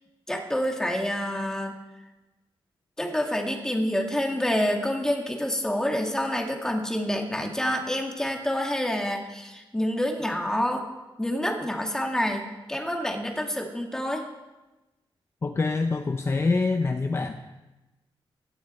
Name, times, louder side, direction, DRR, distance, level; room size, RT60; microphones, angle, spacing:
voice 1, 0.3-1.7 3.0-10.9 11.2-14.2, equal, 5° left, 2 dB, 2.0 m, -27 dB
voice 2, 15.4-17.5, left 3 dB, 30° left, 6 dB, 0.7 m, -25 dB
17.0 x 12.5 x 4.4 m, 1.1 s
wide cardioid pair, 130°, 9 cm